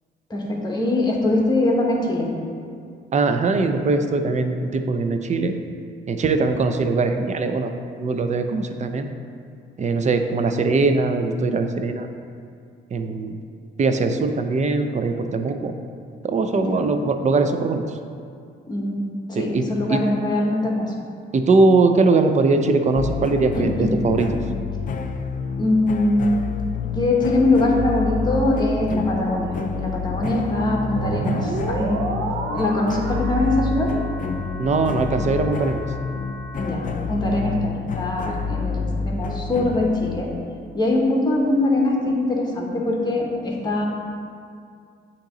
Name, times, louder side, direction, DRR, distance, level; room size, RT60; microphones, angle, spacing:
voice 1, 0.3-2.3 16.5-16.8 18.7-19.1 19.4-20.9 23.8-23.9 25.6-26.4 26.8-32.0 32.4-33.9 36.5-40.3 40.7-43.9, left 2 dB, 20° left, -2 dB, 1.2 m, -22 dB
voice 2, 3.1-5.5 6.1-7.7 8.0-9.1 9.8-12.1 12.9-13.4 13.8-15.7 16.2-17.8 19.4-19.6 19.9-20.0 21.3-24.3 34.6-35.8, right 3 dB, 35° right, 7 dB, 0.5 m, -21 dB
sound 1, 22.9-40.2, left 5 dB, 40° left, 0.4 m, -29 dB
sound 2, 31.0-36.7, right 3 dB, 85° right, 0.6 m, -31 dB
8.7 x 3.0 x 3.9 m, 2.3 s
cardioid pair, 90°, 20 cm